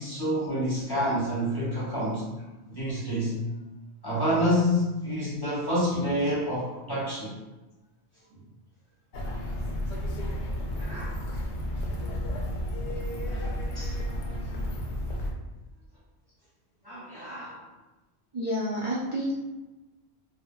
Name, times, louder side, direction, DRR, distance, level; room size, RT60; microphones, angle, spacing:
voice 1, 0.0-2.2 2.7-3.4 4.0-7.3 10.8-11.2 13.7-14.0 16.8-17.6, equal, 25° left, -8 dB, 0.8 m, -28 dB
sound 1, 9.1-15.3, equal, 75° left, 0.8 m, -32 dB
voice 2, 18.3-19.3, equal, 55° right, -7 dB, 0.3 m, -30 dB
3.4 x 2.1 x 2.2 m, 1.1 s
omnidirectional pair, 1.2 m